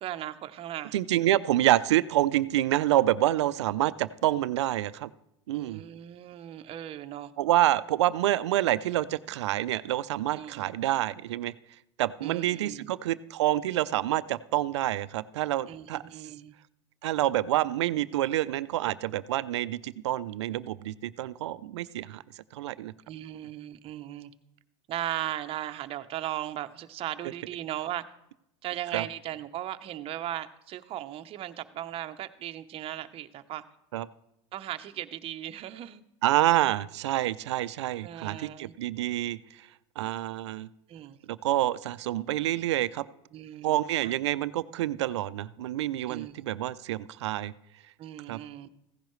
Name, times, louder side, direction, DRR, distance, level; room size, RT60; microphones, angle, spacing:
voice 1, 0.0-1.0 5.5-7.3 10.4-10.7 12.2-12.9 15.7-16.5 23.1-24.3 24.9-28.0 28.6-33.6 34.5-36.0 38.0-38.7 40.9-41.2 43.3-44.1 46.1-46.3 48.0-48.7, right 12 dB, 40° right, 10 dB, 0.8 m, -37 dB
voice 2, 0.9-5.1 5.5-5.8 7.4-11.5 12.0-16.0 17.0-22.2 22.5-22.9 28.9-29.1 33.9-34.1 36.2-39.7 40.0-40.7 41.3-43.1 43.6-47.5 48.3-48.4, right 14 dB, 90° right, 16 dB, 0.5 m, -27 dB
15.5 x 10.5 x 3.2 m, 0.82 s
supercardioid pair, 105°, 14 cm